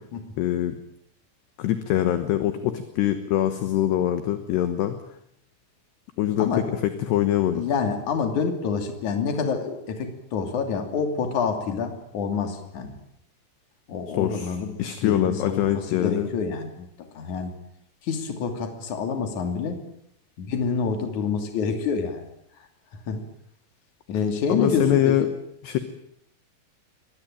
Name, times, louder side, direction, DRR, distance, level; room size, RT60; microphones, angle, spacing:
voice 1, 0.4-0.8 1.6-5.0 6.2-6.5 6.8-7.6 14.2-14.5 14.8-16.3 24.5-25.3 25.6-25.8, left 12 dB, 70° left, 9 dB, 3.0 m, -23 dB
voice 2, 7.5-13.0 13.9-14.7 15.0-17.5 18.0-19.8 20.4-22.3 23.1-23.2 24.1-25.3, left 5 dB, 45° left, 5 dB, 3.6 m, -27 dB
23.5 x 19.5 x 9.1 m, 0.75 s
omnidirectional pair, 5.8 m